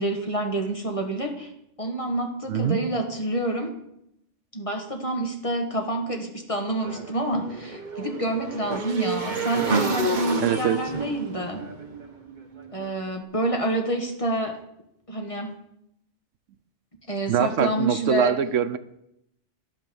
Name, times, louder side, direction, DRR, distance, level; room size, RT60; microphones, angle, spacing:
voice 1, 0.0-1.5 1.8-3.7 4.5-11.6 12.7-14.6 15.1-15.5 17.1-18.3, right 1 dB, 25° left, 3 dB, 1.5 m, -28 dB
voice 2, 2.5-2.8 10.4-10.8 17.3-18.8, right 9 dB, 80° right, 12 dB, 1.1 m, -23 dB
Motorcycle / Engine, 6.8-12.9, right 2 dB, 40° right, 1.1 m, -30 dB
10.5 x 9.0 x 6.9 m, 0.79 s
omnidirectional pair, 1.3 m